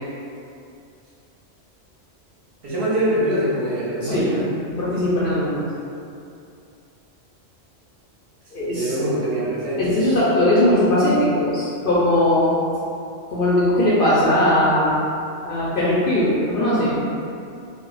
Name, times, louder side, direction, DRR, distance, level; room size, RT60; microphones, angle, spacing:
voice 1, 2.6-4.4 8.7-10.0, right 1 dB, 60° right, -8 dB, 0.7 m, -23 dB
voice 2, 4.0-4.4 4.8-5.6 8.5-8.9 9.8-12.6 13.3-15.0 15.4-17.0, left 1 dB, 60° left, -9 dB, 0.6 m, -19 dB
2.2 x 2.0 x 3.8 m, 2.6 s
omnidirectional pair, 1.3 m